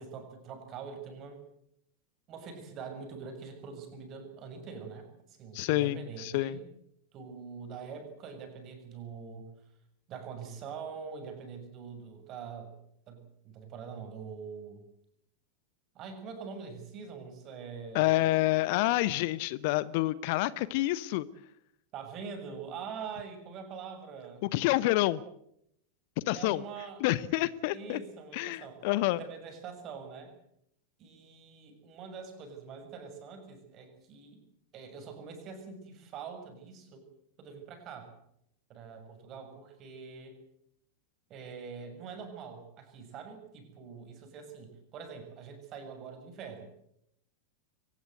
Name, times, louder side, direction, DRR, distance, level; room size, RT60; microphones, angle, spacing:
voice 1, 0.0-1.4 2.3-6.6 7.1-9.5 10.1-12.7 13.1-14.8 15.9-18.5 21.9-24.4 26.3-27.1 27.7-30.3 31.0-34.4 34.7-37.0 37.4-38.1 38.7-40.4 41.3-46.8, right 6 dB, 35° right, 5 dB, 6.8 m, -44 dB
voice 2, 5.5-6.6 17.9-21.3 24.4-25.2 26.3-26.6 27.0-28.0 28.3-29.2, left 17 dB, 50° left, 19 dB, 0.8 m, -28 dB
23.5 x 19.5 x 7.9 m, 0.74 s
figure-of-eight pair, 90°, 0 cm